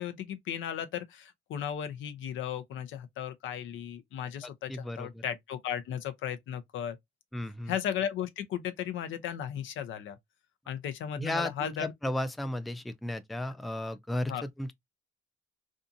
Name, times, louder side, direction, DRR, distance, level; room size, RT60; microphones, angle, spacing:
voice 1, 0.0-7.0 7.7-10.2 10.7-11.9 14.3-14.5, left 9 dB, 80° left, 0.5 m, -35 dB
voice 2, 4.7-5.2 7.3-7.7 11.2-14.7, left 1 dB, ahead, 0.3 m, -34 dB
2.6 x 2.4 x 2.5 m
cardioid pair, 90°, 20 cm